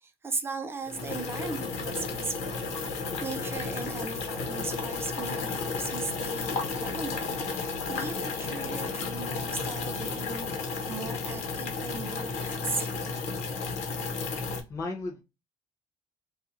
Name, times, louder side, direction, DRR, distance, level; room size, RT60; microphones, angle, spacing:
voice 1, 0.0-10.5 10.9-13.3 13.6-14.1, right 4 dB, 20° right, 0.6 m, -38 dB
sound 1, 0.8-14.6, left 4 dB, 70° left, 1.0 m, -33 dB
voice 2, 14.1-15.2, left 3 dB, 25° left, 0.7 m, -37 dB
4.1 x 2.4 x 2.6 m
cardioid pair, 135°, 11 cm